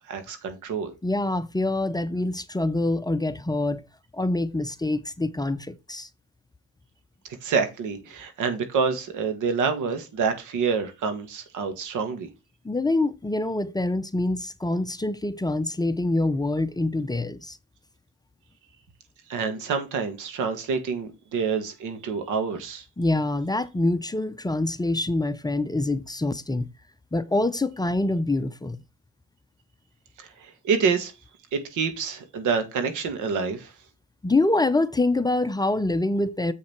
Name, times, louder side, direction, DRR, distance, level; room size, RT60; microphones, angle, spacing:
voice 1, 0.1-0.9 7.4-12.3 19.3-22.8 30.2-31.1 31.5-33.7, right 5 dB, 80° right, 2.0 m, -27 dB
voice 2, 1.0-3.8 4.1-6.1 12.6-17.6 23.0-26.7 27.1-28.8 34.2-36.5, left 2 dB, 15° left, 0.7 m, -25 dB
7.6 x 5.7 x 4.5 m
cardioid pair, 90°, 30 cm